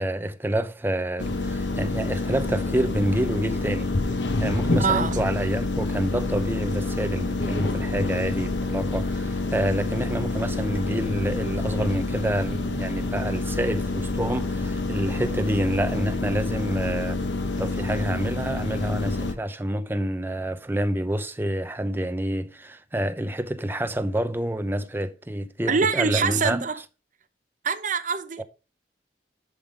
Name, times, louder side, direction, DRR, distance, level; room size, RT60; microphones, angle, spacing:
voice 1, 0.0-3.9 4.4-17.2 17.6-26.6 28.4-28.5, right 1 dB, 10° right, 0.6 m, -28 dB
sound 1, 1.2-19.3, left 2 dB, 90° left, 1.1 m, -27 dB
voice 2, 4.8-5.2 25.7-26.8 27.6-28.4, right 5 dB, 45° right, 0.8 m, -24 dB
10.5 x 3.7 x 4.9 m
head